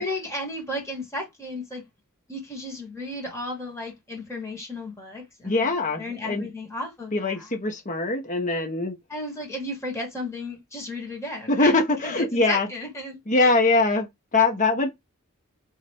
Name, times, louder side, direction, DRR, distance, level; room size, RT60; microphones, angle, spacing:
voice 1, 0.0-1.8 2.3-7.5 9.1-13.5, left 1 dB, 15° left, 1.8 m, -34 dB
voice 2, 5.4-6.5 7.1-8.9 11.5-12.7 13.3-14.9, left 3 dB, 35° left, 1.2 m, -22 dB
4.0 x 2.8 x 3.4 m
head